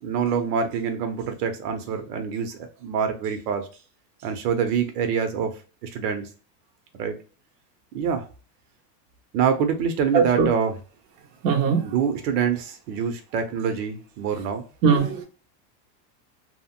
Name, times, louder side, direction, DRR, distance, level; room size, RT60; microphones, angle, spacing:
voice 1, 0.0-3.7 4.2-6.3 7.0-7.1 7.9-8.3 9.3-10.7 11.8-14.6, right 7 dB, 70° right, 0.8 m, -25 dB
voice 2, 10.1-10.5 11.4-11.9 14.8-15.2, right 6 dB, 35° right, 0.7 m, -20 dB
2.9 x 2.1 x 2.8 m
supercardioid pair, 165°, 49 cm